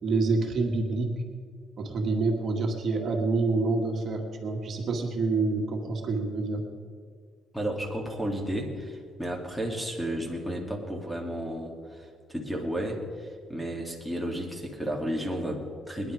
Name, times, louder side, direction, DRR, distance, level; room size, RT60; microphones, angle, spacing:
voice 1, 0.0-1.1 1.8-6.6, right 3 dB, 55° right, 2 dB, 1.8 m, -27 dB
voice 2, 7.5-16.1, equal, 5° left, 1 dB, 2.7 m, -33 dB
20.5 x 10.5 x 4.8 m, 2.1 s
cardioid pair, 90°, 0 cm